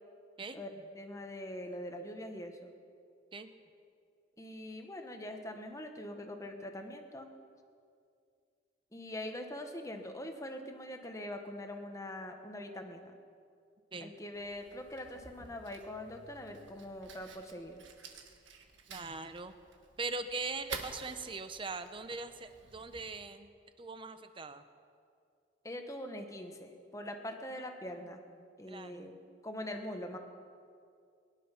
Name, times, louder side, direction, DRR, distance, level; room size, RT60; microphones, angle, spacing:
voice 1, 0.5-2.7 4.4-7.3 8.9-13.1 14.0-17.8 25.6-28.2 28.6-30.2, left 1 dB, 15° left, 5 dB, 1.2 m, -43 dB
Fire, 14.3-23.1, right 5 dB, 90° right, 1.6 m, -51 dB
voice 2, 18.9-19.5 20.0-24.6 27.5-27.7 28.4-29.1, right 3 dB, 30° right, 10 dB, 0.8 m, -41 dB
21.5 x 11.5 x 5.8 m, 2.3 s
head